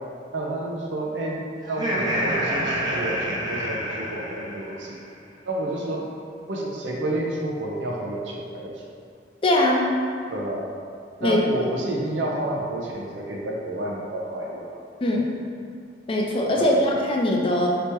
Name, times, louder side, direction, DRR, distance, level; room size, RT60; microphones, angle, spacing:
voice 1, 0.3-5.0 5.4-6.1 6.5-8.8 10.3-10.7 11.2-14.8 16.6-16.8, right 1 dB, 80° right, -2 dB, 0.6 m, -30 dB
Laughter, 1.6-4.9, equal, 20° right, 0.5 m, -27 dB
voice 2, 9.4-9.8 11.2-11.4 15.0-15.2 16.1-17.7, left 1 dB, 30° left, -1 dB, 0.4 m, -21 dB
3.3 x 3.0 x 3.0 m, 2.3 s
head